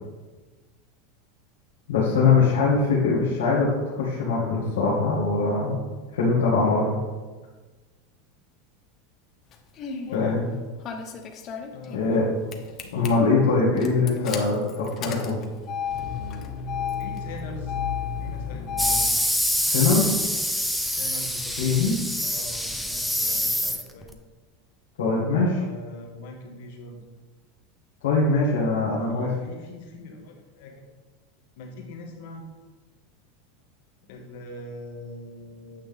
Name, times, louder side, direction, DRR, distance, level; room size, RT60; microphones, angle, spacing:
voice 1, 1.9-5.8 6.1-6.9 10.1-10.4 11.9-12.3 12.9-15.4 19.6-20.2 21.6-21.9 25.0-25.6 28.0-29.3, left 4 dB, 90° left, -7 dB, 1.9 m, -22 dB
Engine starting, 9.5-10.1 10.8-12.2 12.5-13.1 13.8-19.1, left 7 dB, 40° left, 1.0 m, -32 dB
voice 2, 10.0-10.4 11.7-13.3 14.0-14.8 17.0-17.7 18.2-19.1 20.9-21.8 22.2-24.1 25.4-27.0 28.9-30.7 31.6-32.4 34.1-35.8, left 2 dB, 70° left, 1 dB, 1.8 m, -41 dB
sound 1, 18.8-24.1, equal, ahead, 0.7 m, -26 dB
9.0 x 5.7 x 3.6 m, 1.3 s
supercardioid pair, 120°, 0 cm